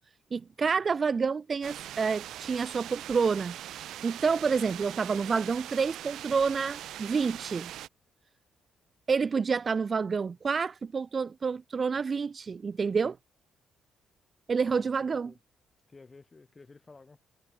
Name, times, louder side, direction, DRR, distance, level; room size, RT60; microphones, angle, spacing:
voice 1, 0.3-7.7 9.1-13.2 14.5-15.3, right 5 dB, 40° right, 0.3 m, -28 dB
sound 1, 1.6-7.9, right 12 dB, 75° right, 0.6 m, -42 dB
voice 2, 14.6-15.4 15.9-17.2, left 3 dB, 25° left, 1.5 m, -54 dB
cardioid pair, 90°, 0 cm